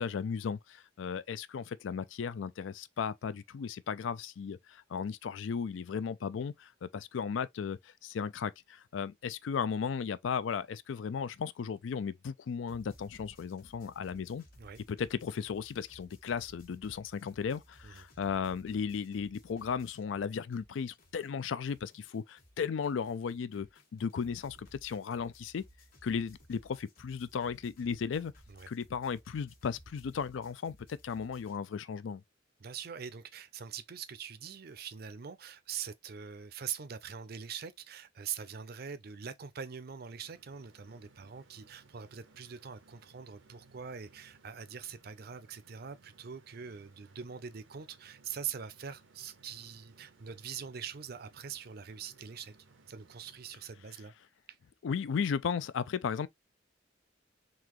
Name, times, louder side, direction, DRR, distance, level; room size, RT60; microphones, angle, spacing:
voice 1, 0.0-14.4 14.9-25.6 26.0-28.3 28.7-32.2 54.8-56.3, left 6 dB, 80° left, 0.4 m, -35 dB
sound 1, 12.7-20.3 20.5-31.6, equal, 50° left, 1.4 m, -59 dB
voice 2, 32.6-52.6 52.9-54.1 54.5-54.6, right 7 dB, 50° right, 0.5 m, -43 dB
sound 2, 39.7-54.2, right 3 dB, 85° right, 0.7 m, -63 dB
3.8 x 2.8 x 3.0 m
head